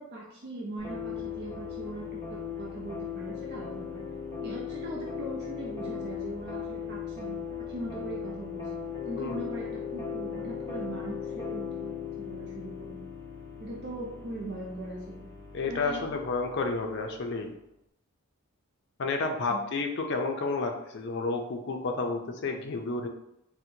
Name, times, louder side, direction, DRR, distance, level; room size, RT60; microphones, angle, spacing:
voice 1, 0.0-4.0 4.4-8.8 9.1-13.0 13.6-15.3 15.7-16.1 19.5-19.7, right 1 dB, 50° right, -3 dB, 0.5 m, -40 dB
sound 1, 0.8-17.5, left 7 dB, 15° left, 0.9 m, -38 dB
voice 2, 15.5-17.5 19.0-23.1, left 3 dB, 55° left, 3 dB, 0.4 m, -31 dB
4.3 x 2.1 x 2.7 m, 0.81 s
head